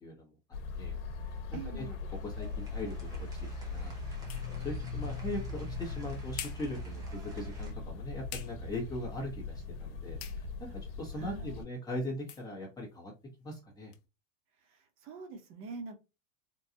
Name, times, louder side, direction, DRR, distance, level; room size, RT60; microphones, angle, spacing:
voice 1, 0.0-0.3 0.8-1.0 1.3-1.8 2.2-3.3 3.6-4.0 4.6-10.7 11.0-13.1 13.4-13.9, left 1 dB, 10° left, -2 dB, 0.8 m, -40 dB
sound 1, 0.5-11.6, left 3 dB, 65° left, 1.0 m, -40 dB
voice 2, 1.5-2.0 11.1-11.6 14.6-16.0, right 4 dB, 35° right, 5 dB, 1.0 m, -45 dB
sound 2, 2.0-7.7, right 3 dB, 10° right, 0.3 m, -55 dB
sound 3, 7.6-14.1, left 10 dB, 45° left, 0.6 m, -52 dB
3.8 x 2.3 x 2.7 m, 0.27 s
supercardioid pair, 160°, 38 cm